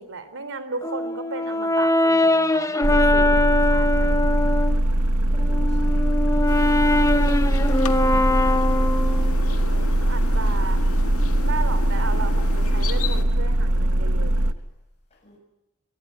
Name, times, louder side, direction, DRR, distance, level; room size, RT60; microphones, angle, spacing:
voice 1, 0.0-4.3 9.4-10.8 11.4-14.3, right 4 dB, 60° right, 12 dB, 3.9 m, -35 dB
Brass instrument, 0.8-4.8 5.3-9.4, left 2 dB, 15° left, 1.1 m, -22 dB
sound 1, 2.8-14.5, right 1 dB, 90° right, 1.5 m, -21 dB
voice 2, 3.2-3.9 5.4-6.1 7.1-7.4 7.9-8.9 15.2-15.4, left 1 dB, 30° left, -3 dB, 7.4 m, -44 dB
sound 2, 6.5-13.2, left 4 dB, 80° left, 1.8 m, -35 dB
25.5 x 23.5 x 9.6 m, 0.88 s
head